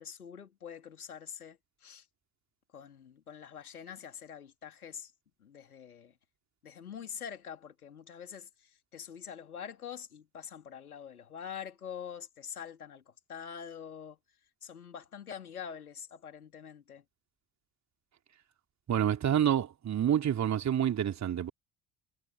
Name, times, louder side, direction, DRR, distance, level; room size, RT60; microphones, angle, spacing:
voice 1, 0.0-2.1 2.7-5.1 5.4-6.2 6.6-14.2 14.6-17.1, left 8 dB, 80° left, 3.5 m, -45 dB
voice 2, 18.9-21.5, right 10 dB, 40° right, 3.0 m, -28 dB
figure-of-eight pair, 55°, 44 cm